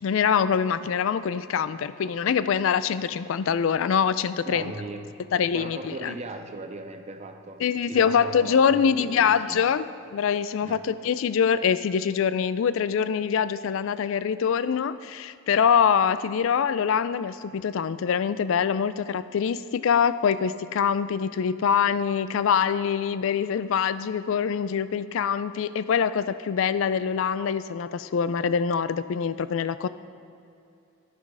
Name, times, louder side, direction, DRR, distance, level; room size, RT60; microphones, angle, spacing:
voice 1, 0.0-4.7 5.3-6.1 7.6-29.9, left 7 dB, 60° left, 15 dB, 0.3 m, -24 dB
voice 2, 4.4-5.2 5.5-9.7 10.6-10.8, right 2 dB, 30° right, 6 dB, 0.6 m, -38 dB
10.5 x 7.2 x 4.8 m, 2.6 s
head